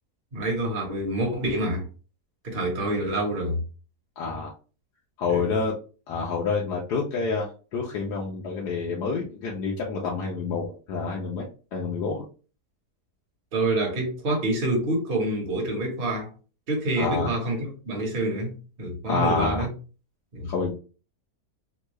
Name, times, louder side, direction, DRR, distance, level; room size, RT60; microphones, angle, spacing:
voice 1, 0.3-1.8 2.4-3.6 5.3-5.4 13.5-16.3 16.7-19.7 20.3-20.5, right 1 dB, 40° right, 1.1 m, -27 dB
voice 2, 4.2-4.5 5.2-5.7 6.1-11.5 11.7-12.2 16.9-17.3 19.1-19.6 20.4-20.7, left 4 dB, 85° left, 1.3 m, -28 dB
3.6 x 2.2 x 3.0 m
omnidirectional pair, 1.7 m